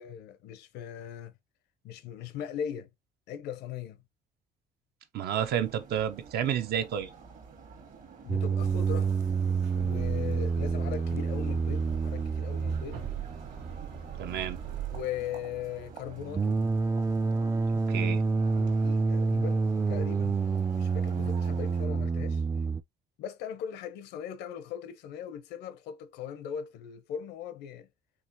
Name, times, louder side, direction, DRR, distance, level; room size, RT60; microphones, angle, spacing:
voice 1, 0.0-1.3 1.8-2.9 3.3-4.0 8.2-9.2 9.7-13.0 14.9-16.6 18.5-19.6 19.9-22.4 23.2-27.9, left 9 dB, 85° left, 0.7 m, -39 dB
voice 2, 5.1-7.1 14.2-14.6 17.7-18.2, right 9 dB, 70° right, 0.7 m, -30 dB
sound 1, 5.4-21.9, right 5 dB, 50° right, 1.3 m, -50 dB
sound 2, 8.3-22.8, right 4 dB, 15° right, 0.3 m, -29 dB
sound 3, 8.6-15.0, right 10 dB, 90° right, 1.0 m, -41 dB
4.8 x 2.8 x 2.6 m
cardioid pair, 110°, 17 cm